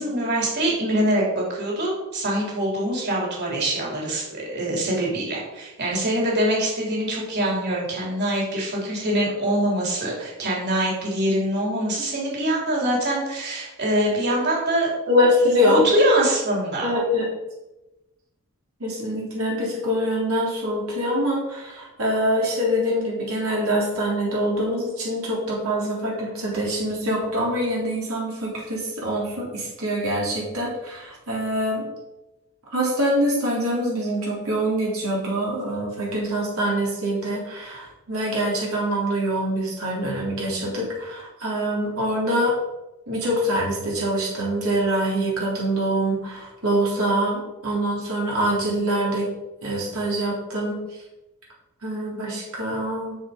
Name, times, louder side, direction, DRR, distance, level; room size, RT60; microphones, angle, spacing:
voice 1, 0.0-14.9 15.6-16.9, right 1 dB, 50° right, -3 dB, 4.3 m, -24 dB
voice 2, 15.1-15.8 16.8-17.3 18.8-31.8 32.7-42.5 43.1-49.3 49.6-50.8 51.8-53.2, equal, 80° right, -4 dB, 3.7 m, -24 dB
12.5 x 6.8 x 5.5 m, 1.0 s
head